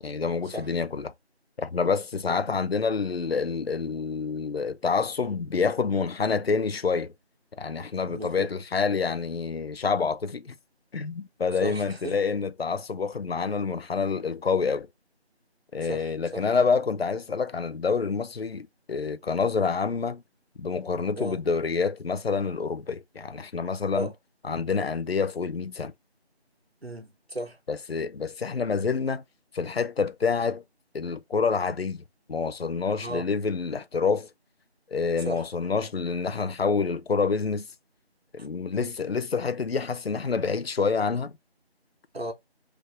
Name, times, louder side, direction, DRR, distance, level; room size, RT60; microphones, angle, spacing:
voice 1, 0.0-1.1 1.6-7.1 7.6-10.5 10.9-14.9 15.7-20.2 20.6-24.1 24.4-25.9 27.7-29.2 29.5-30.6 30.9-32.0 32.3-34.3 34.9-37.7 38.3-41.3, left 5 dB, 65° left, 0.5 m, -27 dB
voice 2, 8.1-8.5 11.6-12.2 15.9-16.4 21.2-21.4 23.9-24.1 26.8-27.6 33.0-33.3 35.2-35.4 38.7-38.9 42.1-42.3, right 1 dB, 65° right, 1.3 m, -35 dB
3.3 x 3.0 x 4.7 m
figure-of-eight pair, 180°, 33 cm